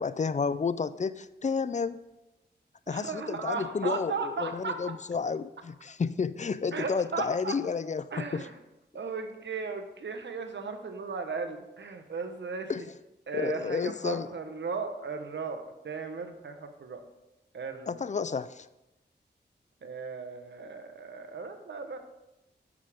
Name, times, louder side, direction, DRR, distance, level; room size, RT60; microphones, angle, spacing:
voice 1, 0.0-2.0 2.9-8.5 12.7-12.9 13.3-14.3 17.9-18.7, left 5 dB, 40° left, 15 dB, 0.4 m, -31 dB
voice 2, 2.9-5.0 6.7-7.6 8.1-8.6 8.9-12.9 13.3-17.0 17.5-18.0 19.8-22.0, right 4 dB, 80° right, 6 dB, 1.0 m, -36 dB
9.9 x 8.4 x 3.5 m, 0.95 s
wide cardioid pair, 70°, 18 cm